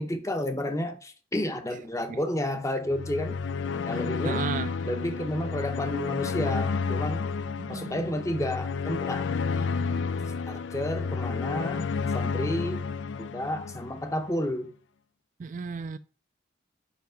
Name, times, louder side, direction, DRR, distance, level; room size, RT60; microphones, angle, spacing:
voice 1, 0.0-3.4 3.7-4.4 4.8-7.2 7.7-9.3 10.5-12.8 13.2-14.7, left 1 dB, 15° left, 0.8 m, -31 dB
sound 1, 2.9-14.2, left 5 dB, 75° left, 0.4 m, -31 dB
voice 2, 3.9-4.7 7.6-8.2 9.6-10.0 15.4-16.0, right 5 dB, 40° right, 0.3 m, -35 dB
5.8 x 5.1 x 5.6 m
head